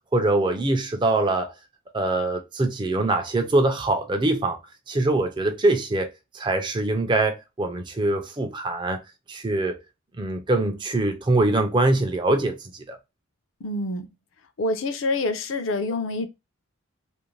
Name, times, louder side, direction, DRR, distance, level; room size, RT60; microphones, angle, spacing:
voice 1, 0.1-1.5 1.9-4.6 4.9-6.1 6.3-9.0 9.3-9.8 10.2-13.0, right 2 dB, 20° right, 0.4 m, -23 dB
voice 2, 13.6-14.1 14.6-16.3, left 2 dB, 65° left, 0.5 m, -26 dB
2.5 x 2.1 x 3.0 m
head